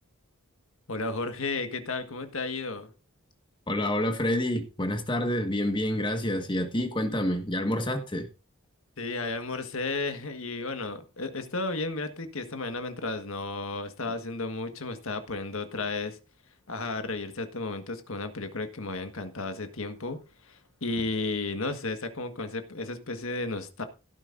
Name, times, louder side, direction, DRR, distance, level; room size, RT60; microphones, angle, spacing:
voice 1, 0.9-2.9 9.0-16.2 16.7-23.8, left 3 dB, 70° left, 1.5 m, -33 dB
voice 2, 3.7-8.3, left 1 dB, 20° left, 1.5 m, -28 dB
16.5 x 9.0 x 2.6 m
head